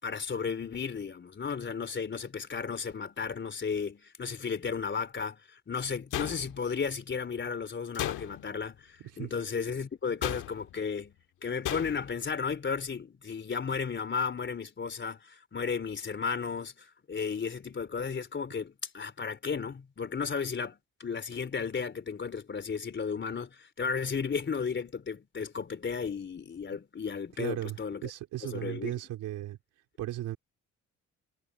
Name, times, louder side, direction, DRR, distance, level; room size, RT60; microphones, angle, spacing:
voice 1, 0.0-11.1 11.4-28.1 28.4-28.9, left 5 dB, 40° left, 3.7 m, -34 dB
sound 1, 6.1-6.8 7.9-8.6 10.2-10.8 11.6-12.2, left 13 dB, 85° left, 2.0 m, -35 dB
voice 2, 9.0-9.3 27.4-29.6 30.0-30.4, right 14 dB, 90° right, 3.6 m, -36 dB
cardioid pair, 90°, 30 cm